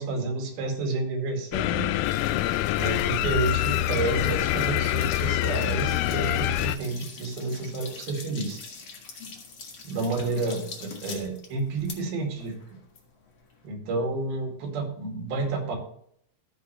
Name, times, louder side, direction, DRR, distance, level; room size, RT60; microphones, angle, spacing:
voice 1, 0.0-1.9 2.8-8.6 9.8-12.5 13.6-15.8, right 3 dB, 70° right, 2 dB, 4.0 m, -30 dB
sound 1, 1.5-6.8, left 15 dB, 85° left, 2.0 m, -25 dB
sound 2, 2.0-13.7, left 4 dB, 50° left, 1.7 m, -44 dB
15.5 x 6.3 x 3.1 m, 0.68 s
omnidirectional pair, 4.6 m